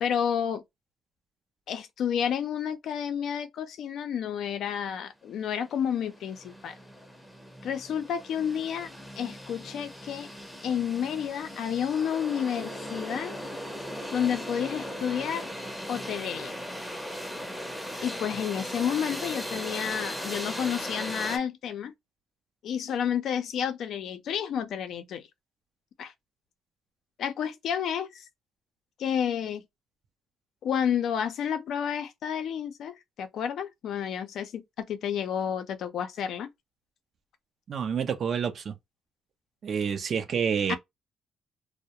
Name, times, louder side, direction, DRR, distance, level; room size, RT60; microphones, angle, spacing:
voice 1, 0.0-0.6 1.7-6.7 7.6-8.9 9.2-10.3 10.6-13.4 14.1-15.5 15.9-16.6 18.0-21.9 22.6-25.2 26.0-26.1 27.2-28.3 29.0-29.6 30.6-36.5 40.7-40.8, left 8 dB, 75° left, 0.5 m, -30 dB
sound 1, 5.4-5.5 5.8-21.4, equal, 5° left, 0.6 m, -38 dB
voice 2, 37.7-38.7 39.6-40.8, right 7 dB, 55° right, 0.4 m, -28 dB
2.3 x 2.0 x 2.8 m
cardioid pair, 90°, 0 cm